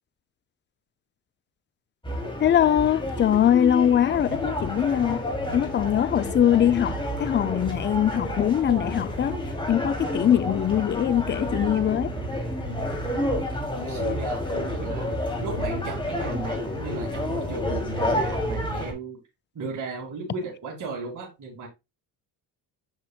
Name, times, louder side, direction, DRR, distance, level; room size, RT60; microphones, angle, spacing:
sound 1, 2.0-18.9, left 1 dB, 10° left, 3.0 m, -29 dB
voice 1, 2.4-5.2 5.5-9.4 9.7-12.1, left 10 dB, 30° left, 0.5 m, -22 dB
voice 2, 13.8-19.2 19.5-21.7, right 3 dB, 45° right, 2.6 m, -36 dB
7.1 x 6.2 x 2.3 m
supercardioid pair, 75°, 41 cm